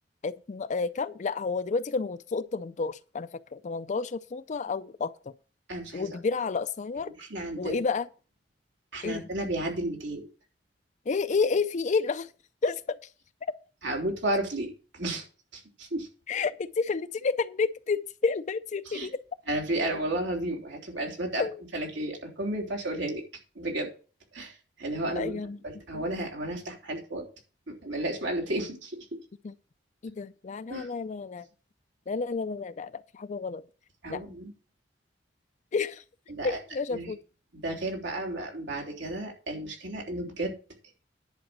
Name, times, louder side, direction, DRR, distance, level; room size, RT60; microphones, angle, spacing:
voice 1, 0.2-5.1 5.9-7.1 7.6-8.1 9.0-9.3 11.1-12.3 12.6-12.8 16.3-19.2 21.4-21.6 25.2-25.6 25.9-26.0 29.4-29.5 30.0-31.5 32.1-33.7 34.1-34.2 35.7-36.0 36.4-37.2, left 4 dB, 40° left, 0.4 m, -30 dB
voice 2, 5.7-6.1 7.2-7.8 8.9-10.3 13.8-15.2 15.5-16.1 18.8-19.1 19.5-21.4 21.7-23.2 23.5-23.9 24.3-27.2 27.8-29.2 30.7-30.9 34.0-34.5 36.3-36.6 36.9-37.1 37.5-40.5, right 1 dB, 85° right, 3.3 m, -32 dB
10.5 x 5.1 x 7.5 m
head